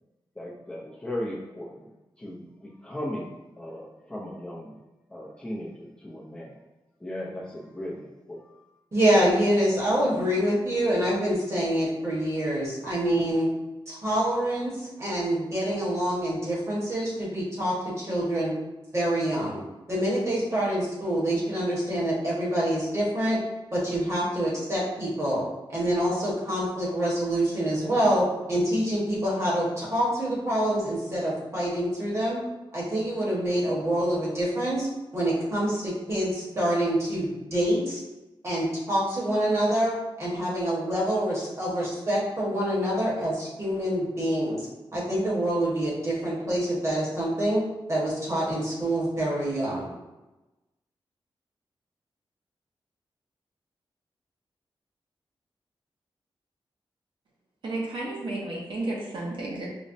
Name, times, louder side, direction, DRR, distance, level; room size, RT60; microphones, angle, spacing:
voice 1, 0.4-1.9 2.2-4.8 5.1-6.6 7.0-8.6, left 1 dB, 10° left, -5 dB, 0.5 m, -37 dB
voice 2, 8.9-13.5 13.9-18.5 18.9-19.6 19.9-23.4 23.7-25.4 25.7-32.4 32.7-34.9 35.1-38.0 38.4-44.7 44.9-47.6 47.9-49.9, right 1 dB, 30° right, -6 dB, 1.2 m, -26 dB
voice 3, 57.6-59.7, right 2 dB, 60° right, -3 dB, 0.7 m, -32 dB
5.1 x 2.0 x 2.6 m, 1.0 s
wide cardioid pair, 170°, 9 cm